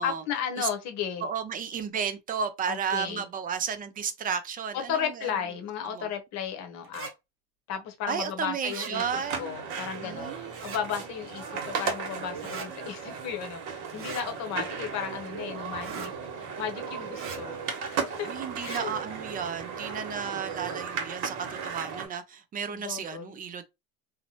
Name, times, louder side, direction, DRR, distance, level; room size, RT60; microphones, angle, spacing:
voice 1, 0.0-1.3 2.7-3.2 4.7-7.1 7.7-9.0 9.4-16.1 16.4-17.6 17.9-18.3 18.6-18.9 22.7-23.4, left 8 dB, 50° left, 0.8 m, -34 dB
voice 2, 1.2-5.3 5.9-6.1 8.1-9.6 10.0-10.5 18.3-23.6, right 7 dB, 25° right, 0.4 m, -33 dB
sound 1, 6.8-7.1 8.7-8.9 10.5-10.8 12.4-12.7 13.9-14.3 15.8-16.1 17.1-17.4 18.5-18.8, right 5 dB, 40° right, 0.8 m, -39 dB
sound 2, 8.9-22.1, right 6 dB, 60° right, 1.0 m, -36 dB
2.8 x 2.1 x 2.8 m
supercardioid pair, 105°, 33 cm